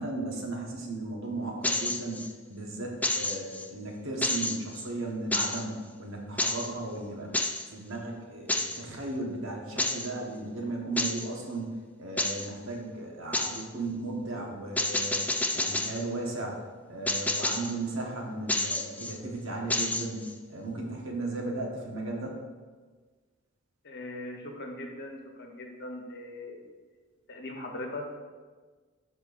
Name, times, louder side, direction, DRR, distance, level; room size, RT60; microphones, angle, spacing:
voice 1, 0.0-7.4 7.7-15.3 15.5-16.6 16.9-22.4, right 2 dB, 70° right, -1 dB, 1.3 m, -36 dB
sound 1, 1.6-2.3 3.0-3.7 4.2-4.9 5.3-5.7 6.4-6.7 7.3-7.7 8.5-8.8 9.8-10.1 11.0-11.3 12.2-12.5 13.3-13.7 14.8-16.0 17.1-17.8 18.5-19.2 19.7-20.3, left 2 dB, 5° left, 0.3 m, -29 dB
voice 2, 23.8-26.7 27.3-28.2, left 1 dB, 55° left, 1 dB, 1.1 m, -40 dB
12.5 x 4.4 x 2.6 m, 1.4 s
head